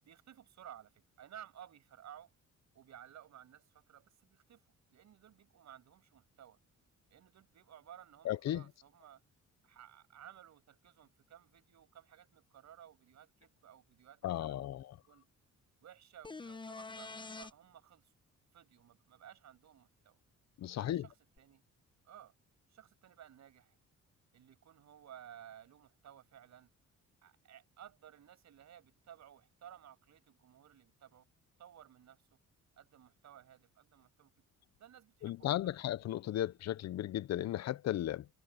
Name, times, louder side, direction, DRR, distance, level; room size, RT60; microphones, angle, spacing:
voice 1, 0.0-2.3 2.7-6.6 7.1-9.2 9.6-14.7 15.1-15.3 15.8-18.1 18.5-20.2 20.7-21.6 22.0-22.3 22.7-23.8 24.3-26.7 27.2-31.3 31.6-32.2 32.8-34.4 34.8-35.8, right 10 dB, 65° right, 6.7 m, -56 dB
voice 2, 8.2-8.6 14.2-15.0 20.6-21.1 35.2-38.3, left 13 dB, 60° left, 0.6 m, -35 dB
sound 1, 16.2-17.5 21.4-21.5, left 3 dB, 15° left, 0.7 m, -45 dB
cardioid pair, 130°, 30 cm